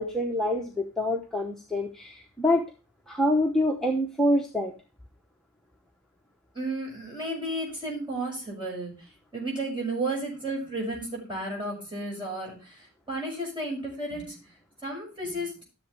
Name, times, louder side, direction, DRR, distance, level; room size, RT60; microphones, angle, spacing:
voice 1, 0.0-2.6 3.1-4.7, left 1 dB, ahead, -1 dB, 1.0 m, -26 dB
voice 2, 6.5-8.9 9.3-14.4 14.8-15.5, right 1 dB, 20° right, -3 dB, 6.0 m, -33 dB
13.5 x 7.3 x 3.4 m, 0.30 s
head